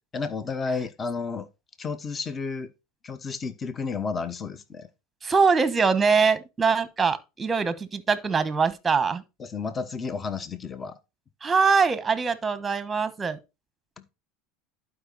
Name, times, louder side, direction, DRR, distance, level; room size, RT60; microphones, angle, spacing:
voice 1, 0.1-1.5 1.8-2.7 3.0-4.9 9.4-11.0 14.0-14.1, left 4 dB, 25° left, 1.0 m, -32 dB
voice 2, 5.2-9.2 11.4-13.4, right 5 dB, 15° right, 1.0 m, -23 dB
11.5 x 5.1 x 4.0 m
supercardioid pair, 120°, 0 cm